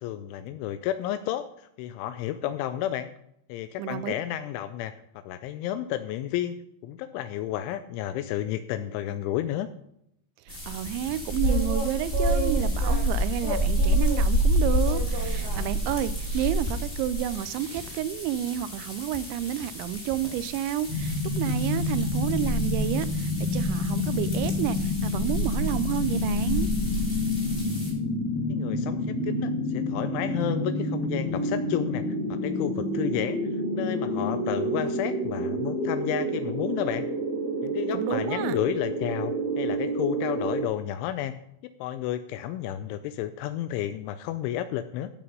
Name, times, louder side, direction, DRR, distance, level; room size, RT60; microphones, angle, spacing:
voice 1, 0.0-3.1 3.5-4.9 5.3-6.6 6.8-9.7 28.5-32.0 32.3-33.4 33.7-37.1 37.6-41.3 41.6-45.1, left 12 dB, 85° left, 10 dB, 3.0 m, -31 dB
voice 2, 3.8-4.1 10.5-26.7 37.9-38.6, right 11 dB, 80° right, 15 dB, 2.8 m, -30 dB
sound 1, 10.5-27.9, equal, 15° left, 3.3 m, -29 dB
sound 2, 10.5-22.1, right 2 dB, 65° right, 1.0 m, -38 dB
sound 3, 20.9-40.6, left 1 dB, 35° right, 4.2 m, -29 dB
14.0 x 6.9 x 5.4 m, 0.75 s
omnidirectional pair, 5.4 m